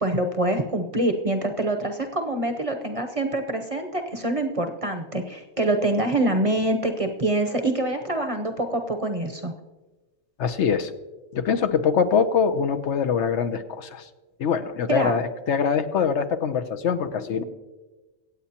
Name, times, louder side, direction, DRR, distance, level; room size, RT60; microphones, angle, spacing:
voice 1, 0.0-9.5 14.9-15.1, right 1 dB, 35° right, 5 dB, 0.8 m, -25 dB
voice 2, 10.4-10.9 11.3-14.1 14.4-17.4, left 6 dB, 70° left, 10 dB, 1.0 m, -23 dB
25.0 x 8.3 x 2.9 m, 1.2 s
omnidirectional pair, 1.3 m